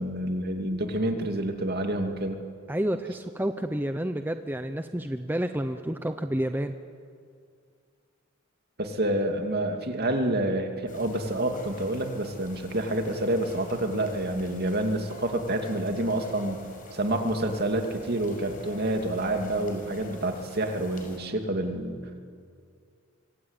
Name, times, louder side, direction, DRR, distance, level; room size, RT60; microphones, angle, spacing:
voice 1, 0.0-2.4 8.8-16.6 16.9-22.0, right 1 dB, 50° right, 4 dB, 2.7 m, -28 dB
voice 2, 2.7-6.7, right 1 dB, 10° right, 7 dB, 0.8 m, -29 dB
sound 1, 10.9-21.2, left 3 dB, 40° left, 5.8 m, -47 dB
25.5 x 25.0 x 9.1 m, 2.2 s
head